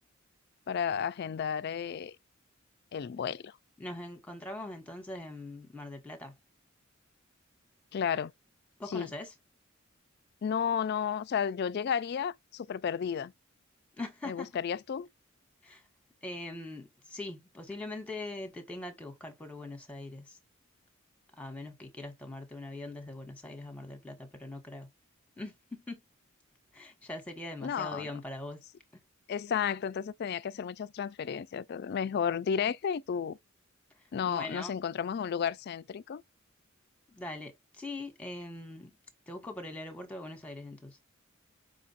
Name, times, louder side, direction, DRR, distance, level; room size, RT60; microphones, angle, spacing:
voice 1, 0.7-2.2 2.9-3.5 7.9-8.3 8.9-9.1 10.4-13.3 14.3-15.1 27.6-28.1 29.3-33.4 34.1-36.2, left 7 dB, 50° left, 0.3 m, -32 dB
voice 2, 3.8-6.3 8.8-9.3 14.0-14.5 15.6-15.8 16.2-20.4 21.4-24.9 25.4-26.0 26.7-28.6 34.2-34.8 37.1-39.0 39.3-41.0, left 2 dB, 5° left, 1.2 m, -42 dB
5.2 x 2.5 x 4.0 m
head